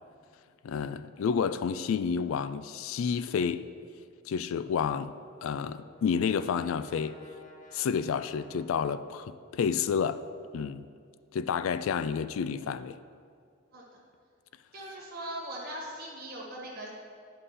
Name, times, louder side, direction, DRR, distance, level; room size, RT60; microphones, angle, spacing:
voice 1, 0.6-3.7 4.3-5.1 5.4-7.2 7.7-10.2 10.5-10.9 11.3-13.0, left 6 dB, 75° left, 13 dB, 0.3 m, -30 dB
Brass instrument, 5.1-9.9, left 3 dB, 35° left, 0.8 m, -56 dB
voice 2, 14.7-16.9, right 1 dB, 45° right, -3 dB, 1.7 m, -40 dB
11.0 x 5.6 x 4.1 m, 2.2 s
head